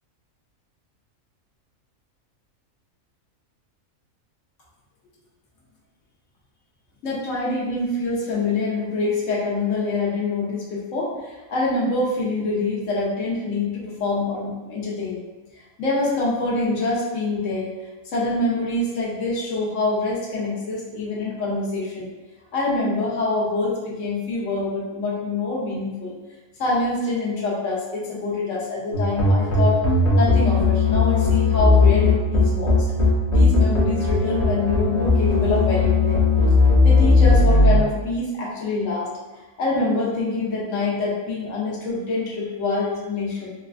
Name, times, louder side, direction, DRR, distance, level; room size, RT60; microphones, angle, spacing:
voice 1, 7.0-15.2 15.8-17.7 18.0-22.1 22.5-26.2 26.6-29.8 30.2-32.9 33.3-36.3 36.8-39.1 39.6-43.5, left 2 dB, 70° left, -5 dB, 1.1 m, -25 dB
sound 1, 28.9-37.8, left 3 dB, 35° left, 0.8 m, -17 dB
4.1 x 2.2 x 2.4 m, 1.2 s
omnidirectional pair, 1.4 m